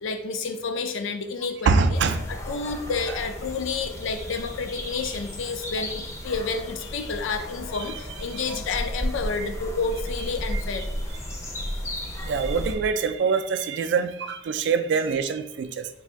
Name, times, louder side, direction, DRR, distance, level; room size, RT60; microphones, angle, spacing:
voice 1, 0.0-2.0 2.3-10.8, left 4 dB, 80° left, 7 dB, 0.4 m, -30 dB
voice 2, 1.7-2.3 8.3-8.4 10.5-10.6 12.2-15.9, right 5 dB, 65° right, 9 dB, 0.3 m, -24 dB
sound 1, 1.9-12.8, equal, 15° left, 0.5 m, -34 dB
3.3 x 2.5 x 4.5 m, 0.83 s
head